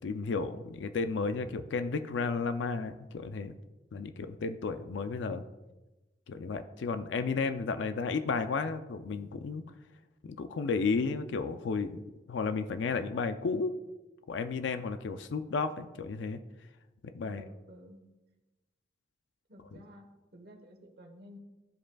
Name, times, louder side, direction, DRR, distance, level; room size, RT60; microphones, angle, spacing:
voice 1, 0.0-3.5 3.9-5.4 6.3-9.6 10.2-12.0 12.3-13.7 14.3-16.4 17.1-17.4, left 4 dB, 80° left, 10 dB, 0.4 m, -33 dB
voice 2, 17.2-18.1 19.5-20.1 20.3-21.4, equal, 55° right, 2 dB, 1.1 m, -52 dB
13.5 x 5.0 x 2.3 m, 1.1 s
head